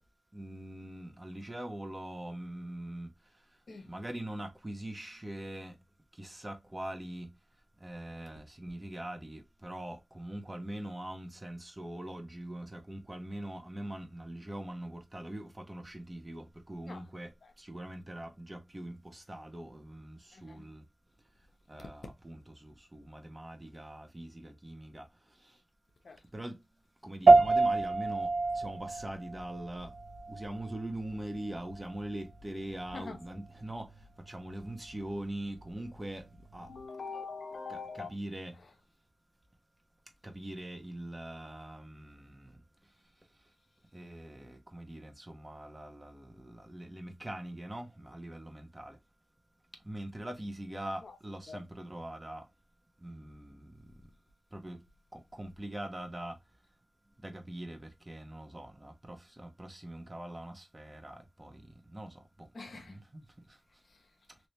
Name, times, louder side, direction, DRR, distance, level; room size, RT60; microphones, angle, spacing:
voice 1, 0.3-3.1 3.9-5.7 6.2-7.3 7.8-17.3 17.6-20.8 21.7-25.0 26.3-26.6 27.0-28.3 28.5-29.9 30.3-33.9 34.3-36.2 36.5-36.7 37.7-38.5 40.2-42.5 43.9-49.0 49.9-52.4 53.0-53.7 54.5-54.8 55.1-56.4 57.2-61.6 61.9-62.1 62.9-63.2, right 1 dB, 25° right, 1.0 m, -42 dB
voice 2, 20.3-20.6 26.0-26.2 32.9-33.2 36.6-38.1 51.0-51.2 51.5-51.6 62.5-63.0 63.9-64.1, left 4 dB, 65° left, 0.9 m, -44 dB
sound 1, 27.3-36.8, right 3 dB, 75° right, 0.7 m, -29 dB
3.3 x 2.8 x 2.7 m
cardioid pair, 45°, 0 cm